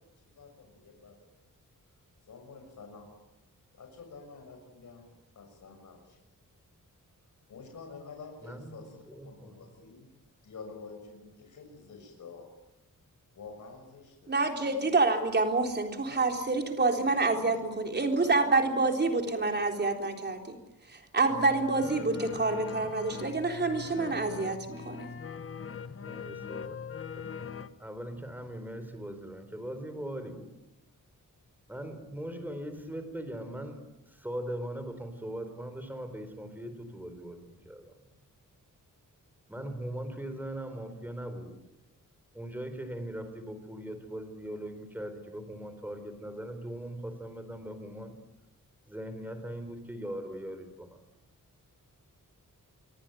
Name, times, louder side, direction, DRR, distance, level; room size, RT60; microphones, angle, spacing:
voice 1, 0.4-1.2 2.3-3.1 3.7-5.1 5.3-6.2 7.5-10.1 10.4-12.5 13.3-14.3 16.1-16.2 17.1-17.5 18.1-18.7 19.0-19.8 22.0-22.2, left 4 dB, 60° left, 3 dB, 6.5 m, -48 dB
voice 2, 8.4-9.6 25.9-26.8 27.2-27.5 27.8-30.5 31.7-38.1 39.5-41.6 42.3-48.2 48.9-51.0, right 1 dB, 5° right, 9 dB, 4.2 m, -40 dB
voice 3, 14.3-25.1, right 3 dB, 30° right, 4 dB, 3.9 m, -28 dB
sound 1, 21.3-27.7, left 6 dB, 40° left, 1.3 m, -41 dB
26.5 x 24.0 x 9.3 m, 0.94 s
wide cardioid pair, 180°, 33 cm